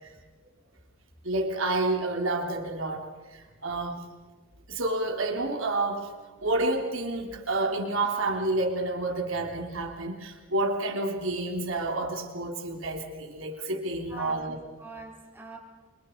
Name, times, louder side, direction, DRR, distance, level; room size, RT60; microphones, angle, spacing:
voice 1, 1.2-3.1 3.3-4.0 4.7-6.1 6.4-14.6, right 2 dB, 75° right, 3 dB, 3.5 m, -29 dB
voice 2, 14.1-15.6, right 2 dB, 10° right, -2 dB, 4.9 m, -43 dB
29.5 x 25.5 x 4.6 m, 1.4 s
head